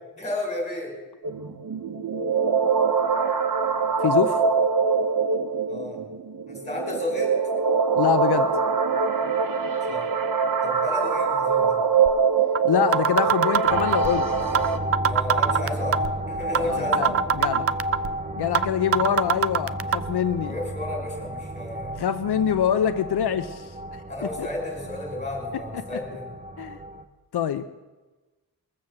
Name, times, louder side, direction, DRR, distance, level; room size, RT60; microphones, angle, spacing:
voice 1, 0.1-0.9 5.7-6.0 6.5-7.3 9.9-10.0 10.6-11.8 15.1-16.0 16.3-17.1 20.4-21.9 24.1-26.3, left 1 dB, 20° left, -1 dB, 5.4 m, -32 dB
sound 1, 1.2-14.8, right 5 dB, 60° right, 1.0 m, -23 dB
voice 2, 4.0-4.4 8.0-8.5 12.6-14.3 16.6-17.7 18.4-20.6 22.0-24.0 24.4-24.5 26.6-26.8 27.3-27.6, left 9 dB, 80° left, 10 dB, 0.6 m, -25 dB
sound 2, 12.1-12.2 12.6-12.7 12.9-14.1 14.6-14.7 14.9-16.1 16.6-16.7 16.9-18.1 18.6-18.7 18.9-20.0, right 8 dB, 40° right, 0.4 m, -21 dB
sound 3, 13.7-27.0, equal, 20° right, 0.7 m, -32 dB
21.5 x 7.2 x 7.6 m, 1.2 s
wide cardioid pair, 135°, 39 cm